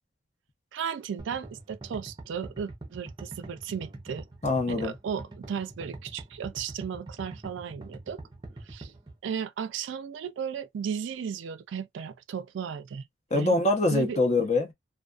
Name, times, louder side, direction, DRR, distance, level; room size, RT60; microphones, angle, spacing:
voice 1, 0.7-4.2 4.7-8.2 8.7-8.9 9.2-13.1 13.3-13.6 13.9-14.2, right 7 dB, 65° right, 0.3 m, -35 dB
sound 1, 1.2-9.1, right 2 dB, 20° right, 0.6 m, -43 dB
voice 2, 4.4-4.9 13.3-14.7, left 2 dB, 35° left, 0.7 m, -24 dB
2.4 x 2.2 x 2.3 m
head